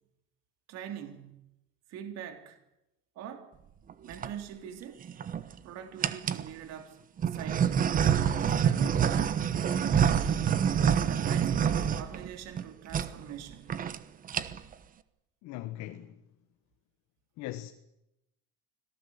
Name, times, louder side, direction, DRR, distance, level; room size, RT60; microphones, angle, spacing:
voice 1, 0.7-1.4 1.9-2.6 3.2-3.5 4.0-5.1 5.6-7.0 7.3-7.9 8.4-10.6 11.1-13.7, right 9 dB, 50° right, 3.5 m, -42 dB
sound 1, 3.9-4.3 5.0-5.5 6.0-6.5 7.2-12.6 12.9-13.1 13.4-13.5 13.7-14.0 14.2-14.7, right 8 dB, 25° right, 1.1 m, -27 dB
voice 2, 15.4-16.1 17.4-17.7, left 15 dB, 60° left, 1.5 m, -39 dB
25.5 x 17.5 x 8.2 m
cardioid pair, 165°, 32 cm